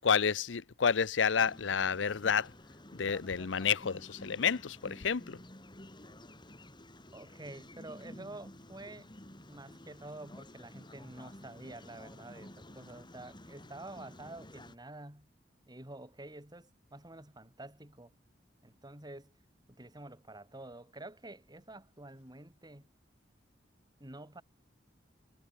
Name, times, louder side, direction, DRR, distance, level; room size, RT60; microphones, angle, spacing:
voice 1, 0.0-2.5 2.9-5.4, left 6 dB, 85° left, 0.7 m, -30 dB
sound 1, 1.3-14.8, left 1 dB, 25° left, 4.5 m, -52 dB
voice 2, 7.1-9.1 9.5-15.3 15.7-18.1 18.6-19.3 19.7-22.9 24.0-24.4, right 2 dB, 25° right, 3.8 m, -49 dB
head